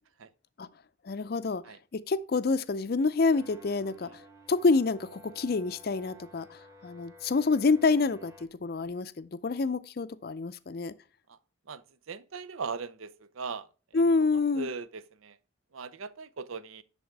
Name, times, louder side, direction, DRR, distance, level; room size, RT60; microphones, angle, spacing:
voice 1, 1.0-1.6 1.9-4.2 4.5-8.3 8.6-10.9 13.9-14.7, left 4 dB, 45° left, 0.4 m, -27 dB
sound 1, 3.3-8.5, equal, 15° right, 1.3 m, -53 dB
voice 2, 11.7-13.7 13.9-14.0 14.3-15.4 15.7-16.8, right 5 dB, 80° right, 0.6 m, -39 dB
10.5 x 3.6 x 4.6 m
head